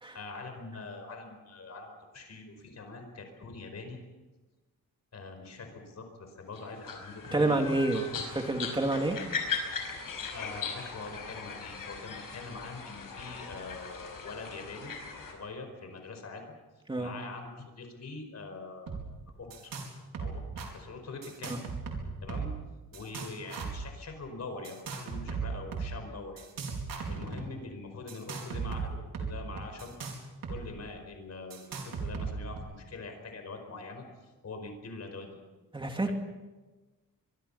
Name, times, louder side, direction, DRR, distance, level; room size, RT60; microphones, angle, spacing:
voice 1, 0.1-4.0 5.1-8.6 10.3-14.9 15.3-16.5 17.0-19.0 19.4-19.8 20.2-21.6 22.2-22.5 22.9-26.4 27.1-29.9 30.5-35.4 36.1-36.2, left 3 dB, 50° left, 5 dB, 5.1 m, -43 dB
sound 1, 6.5-15.3, left 5 dB, 75° left, 5.4 m, -39 dB
voice 2, 7.3-8.0 8.5-9.2 16.9-17.1 35.7-36.1, right 2 dB, 15° right, 3 dB, 2.6 m, -28 dB
sound 2, 18.9-19.0 19.3-19.9 20.1-20.7 21.2-22.6 22.9-23.9 24.6-25.9 26.4-27.4 28.1-30.6 30.9-31.0 31.5-32.6, right 5 dB, 80° right, 4.7 m, -37 dB
24.0 x 24.0 x 5.7 m, 1.2 s
wide cardioid pair, 160°, 34 cm